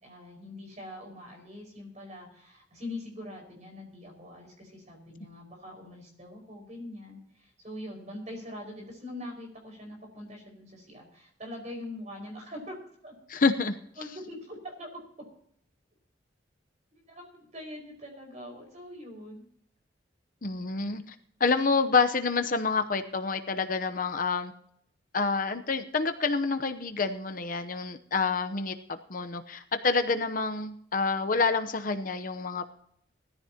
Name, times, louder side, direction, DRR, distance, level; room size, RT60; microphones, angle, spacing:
voice 1, 0.0-12.8 13.0-13.1 14.0-15.0 17.1-19.5, left 1 dB, 40° right, 2 dB, 5.3 m, -43 dB
voice 2, 13.3-13.8 20.4-21.1 21.4-24.5 25.1-32.7, left 4 dB, 50° left, 8 dB, 0.8 m, -28 dB
20.0 x 14.0 x 2.9 m, 0.67 s
head